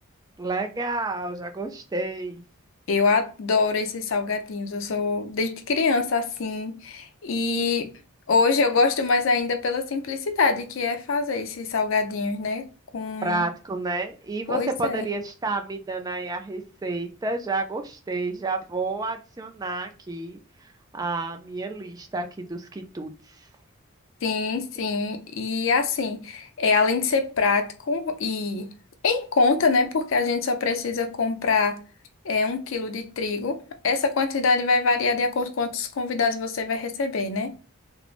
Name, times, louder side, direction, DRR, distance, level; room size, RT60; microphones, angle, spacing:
voice 1, 0.4-2.4 13.2-20.4 20.9-23.1, right 3 dB, 15° right, 0.3 m, -30 dB
voice 2, 2.9-7.9 8.3-12.7 12.9-13.4 14.5-15.1 24.2-28.7 29.0-31.8 32.2-33.6 33.8-37.5, left 4 dB, 60° left, 0.5 m, -24 dB
3.1 x 2.0 x 2.4 m
head